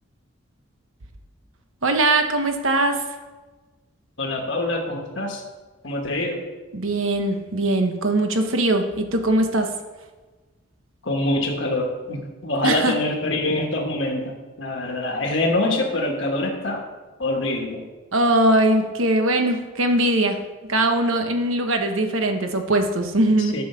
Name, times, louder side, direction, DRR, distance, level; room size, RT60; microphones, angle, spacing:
voice 1, 1.8-3.0 6.7-9.7 12.6-12.9 18.1-20.4 20.7-23.6, right 1 dB, 75° right, 5 dB, 1.2 m, -21 dB
voice 2, 4.2-5.4 5.8-6.4 11.0-16.8 17.2-17.8 23.4-23.6, left 2 dB, 65° left, 0 dB, 1.3 m, -25 dB
9.8 x 5.5 x 6.8 m, 1.3 s
head